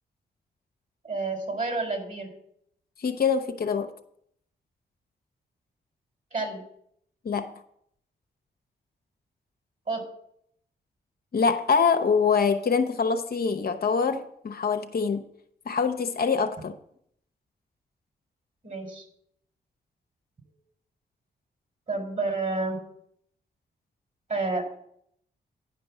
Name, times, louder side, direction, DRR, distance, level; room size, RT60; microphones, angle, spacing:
voice 1, 1.0-2.3 6.3-6.6 9.9-10.0 18.6-19.0 21.9-22.8 24.3-24.8, right 3 dB, 45° right, 4.0 m, -29 dB
voice 2, 3.0-3.9 7.2-7.5 11.3-15.2 15.7-16.7, left 5 dB, 55° left, 0.9 m, -24 dB
10.5 x 5.2 x 7.2 m
supercardioid pair, 50°, 18 cm